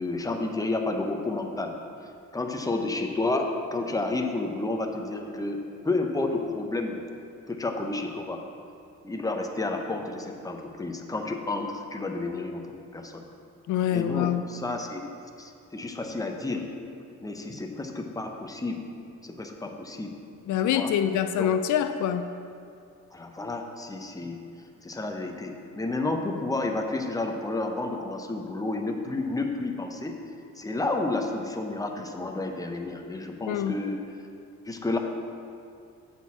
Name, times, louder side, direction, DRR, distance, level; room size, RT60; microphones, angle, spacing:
voice 1, 0.0-1.8 2.3-7.0 7.5-8.4 9.0-12.7 12.9-13.3 13.9-15.0 15.4-16.7 17.2-18.8 19.2-20.1 20.6-20.9 21.4-21.5 23.1-24.4 24.8-30.2 30.6-34.0 34.7-35.0, left 2 dB, 10° left, 3 dB, 0.9 m, -31 dB
voice 2, 13.7-14.4 20.5-22.3 33.4-33.8, left 10 dB, 75° left, 9 dB, 0.5 m, -25 dB
8.0 x 4.6 x 7.3 m, 2.5 s
cardioid pair, 90°, 30 cm